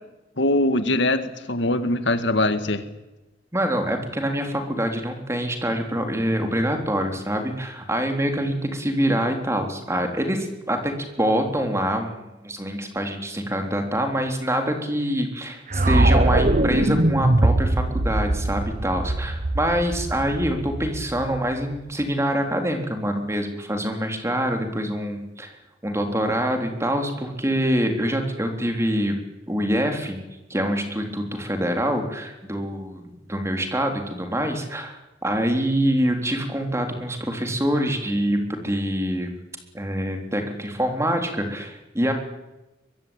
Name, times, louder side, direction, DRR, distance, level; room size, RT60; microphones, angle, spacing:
voice 1, 0.4-2.8, left 1 dB, 65° left, 10 dB, 2.0 m, -22 dB
voice 2, 3.5-10.9 11.2-25.5 25.8-29.2 29.5-30.2 30.5-39.3 39.7-42.1, equal, 15° right, 4 dB, 3.8 m, -25 dB
sound 1, 15.7-21.8, right 1 dB, 40° right, 1.1 m, -22 dB
23.5 x 23.0 x 9.0 m, 1.0 s
head